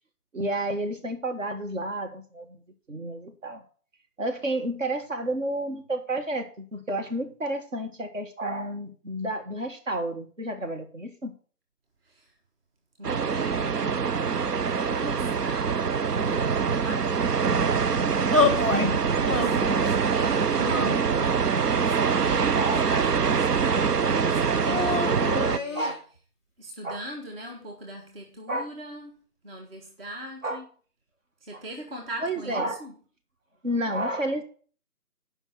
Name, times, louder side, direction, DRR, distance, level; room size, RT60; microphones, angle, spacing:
voice 1, 0.3-2.6 2.9-3.6 4.2-11.3 18.7-19.3 22.5-23.0 25.7-26.0 26.8-27.0 28.5-28.7 30.4-30.6 31.5-31.6 32.2-32.9 33.6-34.4, right 1 dB, 55° right, 1.6 m, -31 dB
voice 2, 13.0-14.1 14.8-17.4 18.4-25.9 26.6-30.7 31.4-32.9, right 1 dB, 40° right, 1.3 m, -41 dB
sound 1, 13.0-25.6, right 6 dB, 85° right, 0.7 m, -24 dB
sound 2, 18.3-18.9 19.3-19.9 20.6-21.5 22.2-23.2 24.6-26.0, left 4 dB, 20° right, 0.7 m, -28 dB
7.3 x 5.4 x 7.3 m
figure-of-eight pair, 150°, 46 cm